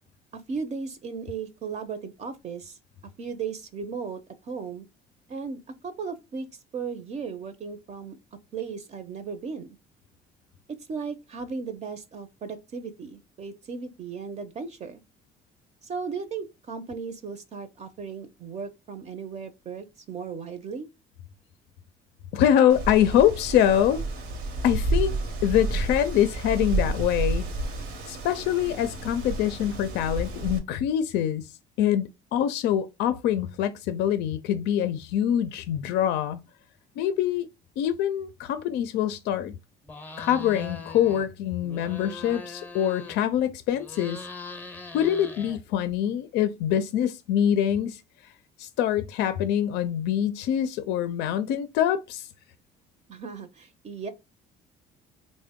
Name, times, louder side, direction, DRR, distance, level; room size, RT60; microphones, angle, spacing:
voice 1, 0.3-2.8 3.2-4.9 5.3-6.5 6.7-8.2 8.5-9.7 10.9-15.0 15.8-20.9 53.1-54.1, right 5 dB, 40° right, 0.5 m, -36 dB
voice 2, 22.3-24.0 24.6-25.1 25.4-27.4 28.1-31.5 31.8-36.4 37.0-37.5 37.8-39.5 40.2-44.2 44.9-48.0 48.6-52.3, left 10 dB, 85° left, 0.4 m, -24 dB
Wind, 22.7-30.6, right 2 dB, 80° right, 0.9 m, -30 dB
sound 1, 39.8-41.3 41.6-43.4 43.7-46.0, left 3 dB, 10° left, 0.5 m, -41 dB
3.6 x 2.1 x 3.5 m
cardioid pair, 110°, 17 cm